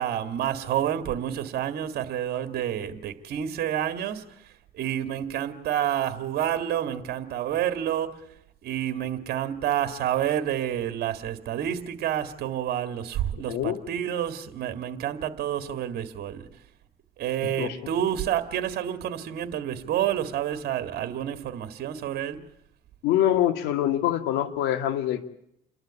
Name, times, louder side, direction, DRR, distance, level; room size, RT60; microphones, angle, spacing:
voice 1, 0.0-4.2 4.7-8.2 8.6-16.5 17.2-22.4, right 10 dB, 65° right, 1.9 m, -29 dB
voice 2, 13.5-13.8 17.6-17.8 23.0-25.2, left 12 dB, 90° left, 2.0 m, -24 dB
28.5 x 12.0 x 8.3 m
cardioid pair, 110°, 17 cm